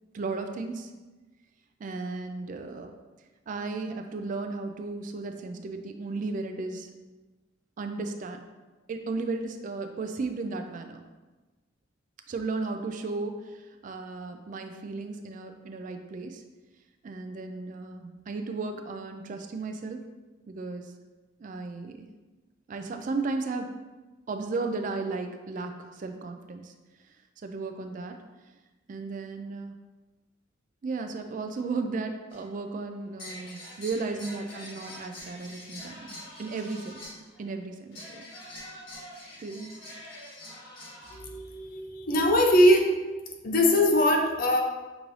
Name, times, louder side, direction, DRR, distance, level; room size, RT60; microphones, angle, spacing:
voice 1, 0.1-0.9 1.8-2.9 3.5-6.9 7.8-8.4 8.9-11.0 12.3-16.4 17.0-20.0 20.5-20.9 21.4-22.1 22.7-23.7 24.3-26.7 27.4-28.2 28.9-29.8 30.8-37.1 37.4-38.3 39.4-39.7, right 3 dB, 45° right, 6 dB, 0.3 m, -35 dB
sound 1, 32.3-32.5 33.2-37.5 37.9-41.2, left 1 dB, 80° left, 1.4 m, -45 dB
voice 2, 41.2-42.9 43.4-44.6, left 1 dB, 50° left, 2 dB, 0.6 m, -21 dB
6.0 x 2.6 x 3.1 m, 1.2 s
head